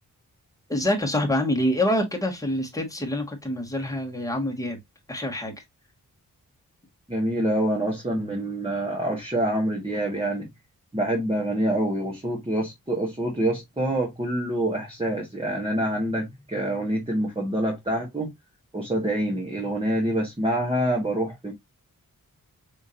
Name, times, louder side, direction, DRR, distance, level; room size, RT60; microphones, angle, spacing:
voice 1, 0.7-4.8 5.1-5.6, left 1 dB, 10° left, 1.8 m, -26 dB
voice 2, 7.1-10.5 10.9-18.3 18.7-21.5, right 1 dB, 15° right, 1.7 m, -26 dB
5.2 x 3.5 x 2.9 m
wide cardioid pair, 90°, 34 cm